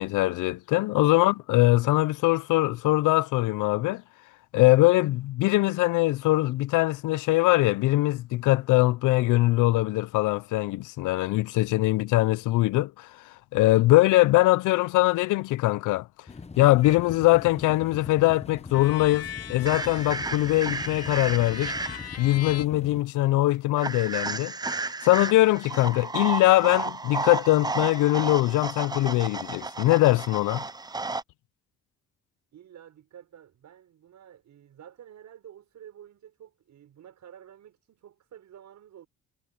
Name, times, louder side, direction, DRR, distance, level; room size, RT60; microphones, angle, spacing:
voice 1, 0.0-4.0 4.5-13.1 13.5-16.1 16.6-21.7 22.2-24.5 25.0-30.6, left 18 dB, 90° left, 0.6 m, -22 dB
sound 1, 16.3-23.0, left 4 dB, 20° left, 1.0 m, -42 dB
sound 2, 16.8-17.1 18.7-22.7, left 9 dB, 55° left, 2.2 m, -40 dB
sound 3, 19.7-22.2 23.8-31.2, right 3 dB, 15° right, 0.6 m, -33 dB
voice 2, 32.5-39.1, right 10 dB, 65° right, 6.4 m, -50 dB
cardioid pair, 90°, 30 cm